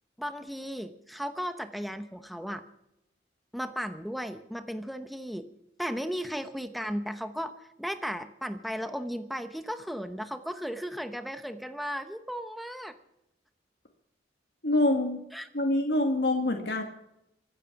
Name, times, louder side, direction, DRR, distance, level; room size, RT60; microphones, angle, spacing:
voice 1, 0.2-2.6 3.5-5.5 5.8-13.0 15.3-15.5, equal, ahead, 9 dB, 0.9 m, -35 dB
voice 2, 14.6-15.2 15.5-16.8, left 1 dB, 60° left, 2 dB, 1.7 m, -25 dB
24.0 x 8.9 x 5.9 m, 0.83 s
head